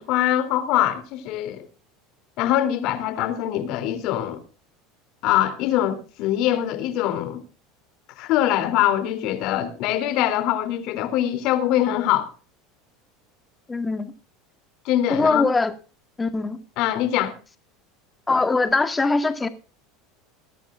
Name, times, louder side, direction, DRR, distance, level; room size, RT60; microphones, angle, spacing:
voice 1, 0.0-1.7 2.4-4.4 5.2-7.4 8.2-12.3 14.8-15.4 16.8-17.3, left 12 dB, 60° left, 3.0 m, -23 dB
voice 2, 13.7-14.1 15.1-15.7 16.2-16.6 18.3-19.5, left 3 dB, 15° left, 1.8 m, -22 dB
21.5 x 10.5 x 2.5 m
supercardioid pair, 125°, 0 cm